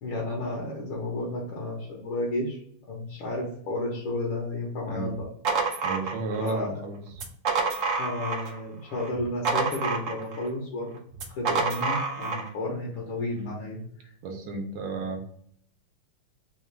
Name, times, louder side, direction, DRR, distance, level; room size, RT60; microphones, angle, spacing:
voice 1, 0.0-2.6 2.9-5.3 6.4-6.7 8.0-11.0 11.4-14.1, left 2 dB, 75° left, -3 dB, 1.8 m, -32 dB
sound 1, 5.1-6.6 7.1-8.6 8.9-10.5 11.1-12.5, right 4 dB, 65° right, 0.8 m, -28 dB
voice 2, 5.8-7.0 13.4-13.6 14.2-15.2, right 3 dB, 90° right, 3 dB, 1.8 m, -33 dB
4.8 x 2.4 x 3.2 m, 0.66 s
omnidirectional pair, 2.3 m